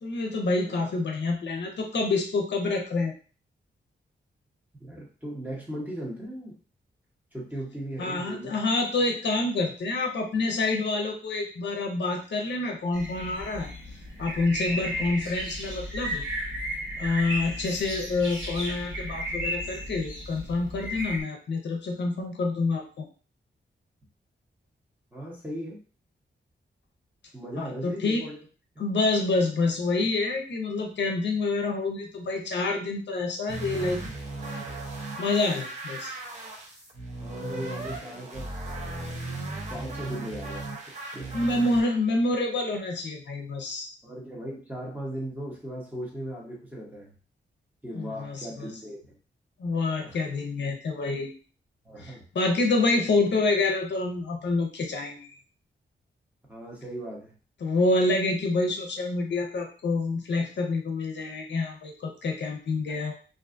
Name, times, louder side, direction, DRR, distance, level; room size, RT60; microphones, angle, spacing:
voice 1, 0.0-3.1 8.0-13.7 14.2-16.2 17.0-23.1 27.6-28.2 28.8-34.0 35.2-36.1 41.3-43.9 47.9-48.7 49.6-51.3 52.0-55.3 57.6-63.1, left 3 dB, 70° left, 2 dB, 0.5 m, -27 dB
voice 2, 4.8-6.6 7.3-8.6 14.7-15.0 25.1-25.8 27.3-28.4 37.2-38.5 39.7-40.7 41.1-41.3 44.0-47.1 47.8-49.1 50.0-50.2 51.8-52.2 56.5-57.3, right 1 dB, 10° right, -3 dB, 0.8 m, -37 dB
sound 1, 12.9-21.2, equal, 80° right, 1.3 m, -34 dB
sound 2, 33.5-41.8, right 2 dB, 40° right, 0.7 m, -36 dB
2.5 x 2.3 x 2.4 m, 0.38 s
wide cardioid pair, 120°, 19 cm